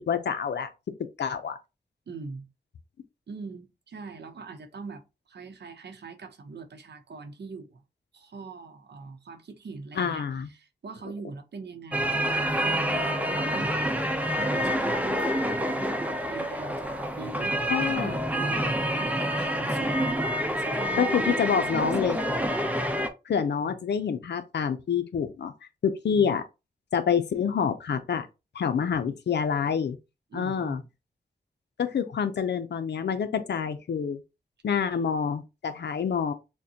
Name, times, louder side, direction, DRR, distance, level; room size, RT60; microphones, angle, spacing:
voice 1, 0.1-0.7 1.2-1.6 10.0-10.5 17.7-18.2 21.0-22.2 23.3-25.5 25.8-26.4 26.9-28.3 28.5-30.0 30.3-30.8 31.8-34.2 34.6-36.3, left 7 dB, 85° left, 0.5 m, -27 dB
voice 2, 2.1-2.5 3.3-7.8 8.1-20.2 20.6-22.5 23.6-23.8 26.1-26.3 30.3-30.9, right 4 dB, 80° right, 0.8 m, -42 dB
sound 1, 11.9-23.1, equal, 10° right, 0.7 m, -27 dB
6.3 x 2.2 x 2.8 m
wide cardioid pair, 65°, 17 cm